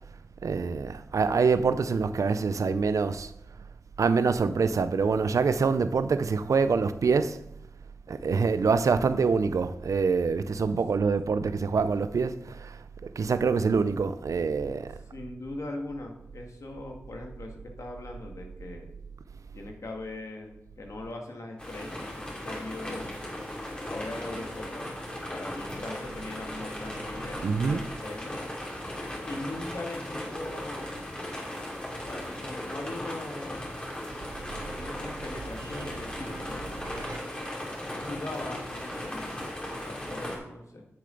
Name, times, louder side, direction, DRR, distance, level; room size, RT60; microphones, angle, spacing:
voice 1, 0.4-3.3 4.0-7.4 8.1-12.3 13.2-14.9 27.4-27.8 37.0-37.2, right 5 dB, 80° right, 0.5 m, -25 dB
voice 2, 15.1-18.9 19.5-23.2 23.9-28.4 29.2-31.1 32.1-33.7 34.8-37.1 37.9-40.9, left 2 dB, 70° left, 1.8 m, -40 dB
sound 1, 21.6-40.4, left 1 dB, 20° left, 3.1 m, -37 dB
9.8 x 6.7 x 3.9 m
cardioid pair, 40°, 5 cm